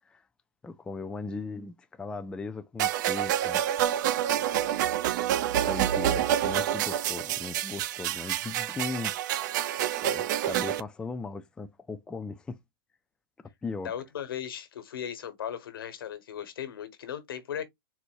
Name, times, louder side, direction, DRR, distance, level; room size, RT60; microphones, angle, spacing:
voice 1, 0.6-4.0 5.7-9.4 10.0-12.6 13.6-13.9, left 3 dB, 5° left, 0.4 m, -38 dB
sound 1, 2.8-10.8, right 11 dB, 55° right, 0.5 m, -28 dB
voice 2, 13.8-17.6, left 9 dB, 80° left, 1.2 m, -37 dB
4.1 x 2.1 x 4.6 m
hypercardioid pair, 135°, 12 cm